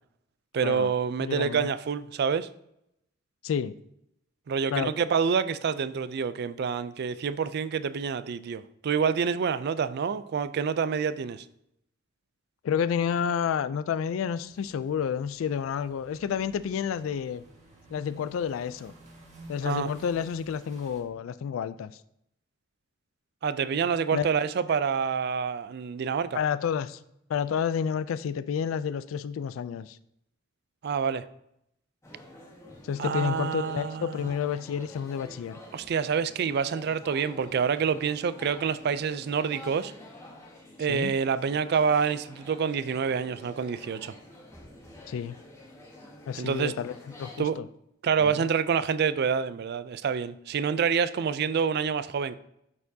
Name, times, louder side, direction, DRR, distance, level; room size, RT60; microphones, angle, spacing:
voice 1, 0.5-2.5 4.5-11.4 19.6-19.9 23.4-26.4 30.8-31.2 33.0-34.3 35.7-39.9 40.8-44.2 46.4-46.7 47.4-47.6 48.0-52.4, right 6 dB, 55° right, 0.4 m, -27 dB
voice 2, 1.2-1.7 3.4-3.7 4.7-4.9 12.6-17.4 17.9-18.9 19.5-21.9 24.1-24.3 26.3-27.0 27.3-30.0 32.8-35.6 40.9-41.1 45.1-45.4 46.3-47.7 48.2-48.5, left 7 dB, 85° left, 0.3 m, -30 dB
sound 1, 14.4-21.0, right 1 dB, 35° right, 1.7 m, -53 dB
sound 2, 32.0-47.4, left 1 dB, 15° left, 1.7 m, -48 dB
12.0 x 4.4 x 2.7 m
head